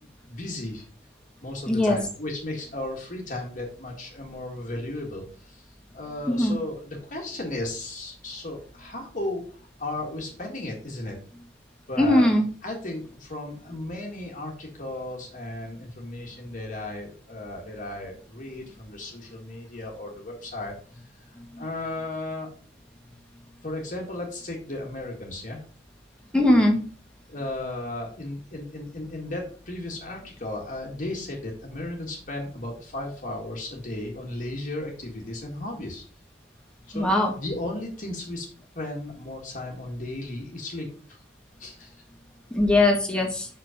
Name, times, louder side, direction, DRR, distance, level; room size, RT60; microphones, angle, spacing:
voice 1, 0.2-0.8 1.4-5.6 5.9-11.2 11.9-12.3 12.6-21.0 21.6-22.5 23.6-25.6 27.3-36.0 36.9-37.1 37.4-38.5 38.7-41.2 41.6-41.9, left 2 dB, 45° left, -1 dB, 1.7 m, -35 dB
voice 2, 1.7-2.0 6.3-6.6 12.0-12.5 21.5-21.6 26.3-26.8 36.9-37.3 42.5-43.5, left 1 dB, 5° left, 1 dB, 1.8 m, -20 dB
6.1 x 5.4 x 5.0 m, 0.42 s
head